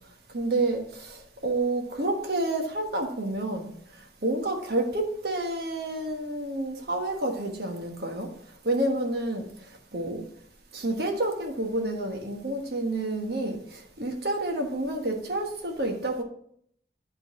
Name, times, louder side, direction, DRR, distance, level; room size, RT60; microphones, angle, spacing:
voice 1, 0.3-3.7 4.2-8.3 8.6-9.5 9.9-10.2 10.7-16.2, right 2 dB, 60° right, 3 dB, 1.3 m, -29 dB
10.5 x 4.0 x 4.8 m, 0.66 s
head